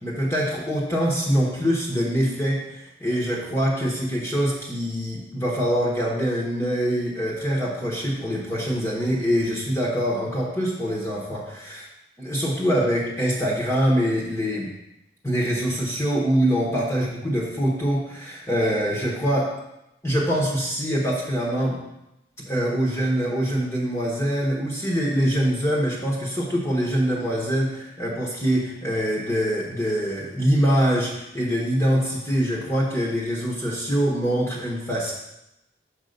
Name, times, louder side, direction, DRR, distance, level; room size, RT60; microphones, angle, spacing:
voice 1, 0.0-11.9 12.2-14.7 15.2-19.5 20.0-21.8 22.5-35.1, equal, 15° left, -4 dB, 1.2 m, -24 dB
6.5 x 5.2 x 5.3 m, 0.87 s
head